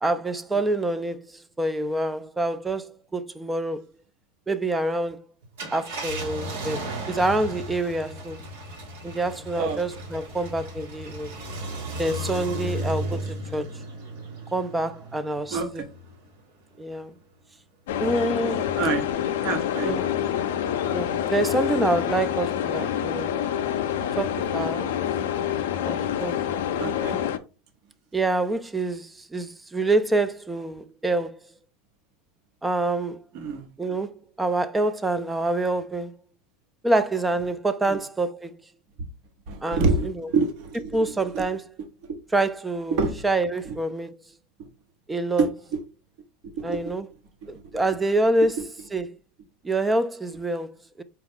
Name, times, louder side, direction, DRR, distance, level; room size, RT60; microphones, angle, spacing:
voice 1, 0.0-3.9 4.5-5.3 5.7-8.4 9.0-11.3 12.0-13.8 14.5-15.8 16.8-17.1 18.0-18.7 19.8-20.1 20.9-23.3 24.2-24.9 25.8-26.4 28.1-31.4 32.6-33.2 33.8-36.1 36.8-38.6 39.6-40.3 40.9-41.7 42.3-44.2 45.1-45.5 46.6-47.1 47.5-48.6 48.9-49.2 49.6-51.0, right 2 dB, 15° right, 0.3 m, -26 dB
Car, 5.4-16.3 16.8-16.9 18.9-19.1, right 1 dB, 80° right, 1.2 m, -35 dB
sound 1, 17.9-27.4, left 10 dB, 80° left, 0.4 m, -27 dB
voice 2, 19.4-20.1 26.8-27.2 33.3-33.7 37.9-38.0 39.5-41.0 41.3-41.5 43.0-43.2 43.7-43.8 45.4-45.5 46.7-46.8, right 4 dB, 60° right, 1.0 m, -26 dB
4.5 x 2.3 x 3.6 m
hypercardioid pair, 100°, 0 cm